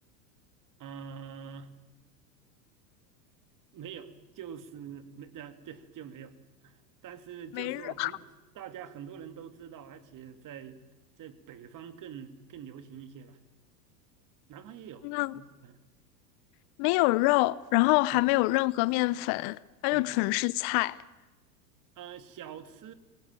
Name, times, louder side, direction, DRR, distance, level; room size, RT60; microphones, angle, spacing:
voice 1, 0.8-1.7 3.7-6.3 6.6-8.3 8.5-10.8 11.2-13.4 14.5-15.8 18.1-18.2 19.9-20.1 22.0-22.9, right 8 dB, 40° right, 2.6 m, -45 dB
voice 2, 7.5-8.1 15.0-15.3 16.8-21.0, left 21 dB, 50° left, 0.8 m, -26 dB
30.0 x 19.0 x 9.1 m
hypercardioid pair, 105°, 50 cm